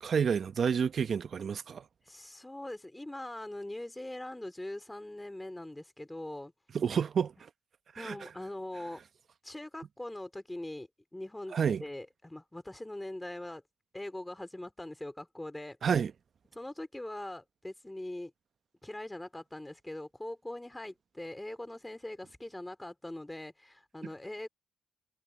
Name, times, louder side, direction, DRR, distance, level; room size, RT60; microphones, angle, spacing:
voice 1, 0.0-1.8 6.7-7.3 7.9-8.3 11.5-11.8 15.8-16.1, right 7 dB, 50° right, 0.9 m, -29 dB
voice 2, 2.1-6.5 7.9-9.0 9.4-13.6 13.9-15.8 16.5-18.3 18.8-24.5, left 1 dB, 10° left, 3.2 m, -42 dB
cardioid pair, 90°, 0 cm